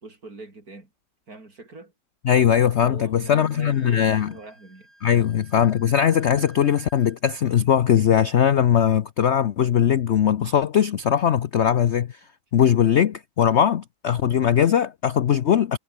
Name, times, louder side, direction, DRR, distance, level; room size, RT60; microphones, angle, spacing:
voice 1, 0.0-0.9 1.3-1.9 2.8-4.9 5.2-5.3, right 3 dB, 50° right, 5.2 m, -42 dB
voice 2, 2.2-4.3 5.0-12.2 12.5-15.8, left 9 dB, 60° left, 0.7 m, -20 dB
Wind instrument woodwind instrument, 3.2-7.2, equal, 10° right, 8.0 m, -54 dB
omnidirectional pair, 1.9 m